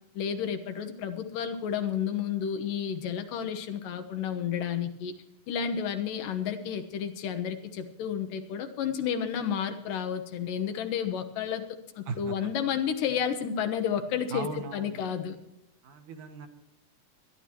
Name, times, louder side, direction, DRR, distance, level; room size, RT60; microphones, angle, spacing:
voice 1, 0.1-5.1 5.5-11.6 12.0-15.4, left 8 dB, 80° left, 8 dB, 2.9 m, -31 dB
voice 2, 12.1-12.5 14.3-15.1 15.8-16.5, right 5 dB, 70° right, 5 dB, 2.8 m, -38 dB
23.0 x 11.5 x 3.0 m, 0.88 s
omnidirectional pair, 3.8 m